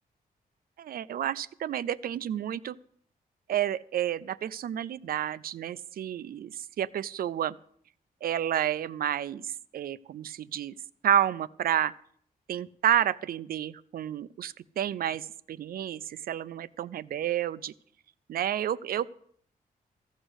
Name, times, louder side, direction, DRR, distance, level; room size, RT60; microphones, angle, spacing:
voice 1, 0.8-2.8 3.5-7.5 8.2-10.7 11.0-11.9 12.5-17.7 18.3-19.1, right 10 dB, 70° right, 17 dB, 0.4 m, -30 dB
14.5 x 6.3 x 7.9 m, 0.62 s
wide cardioid pair, 135°, 16 cm